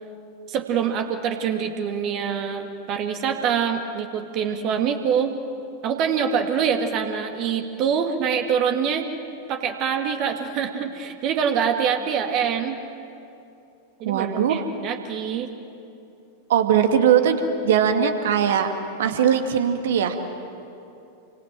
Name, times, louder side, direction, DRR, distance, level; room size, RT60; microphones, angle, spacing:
voice 1, 0.5-5.4 5.8-9.1 9.5-12.8 14.0-15.5, right 7 dB, 40° right, 5 dB, 2.2 m, -25 dB
voice 2, 14.1-14.6 16.5-18.7 19.0-20.2, right 8 dB, 60° right, 6 dB, 2.3 m, -20 dB
29.5 x 25.0 x 7.7 m, 2.7 s
figure-of-eight pair, 90°, 0 cm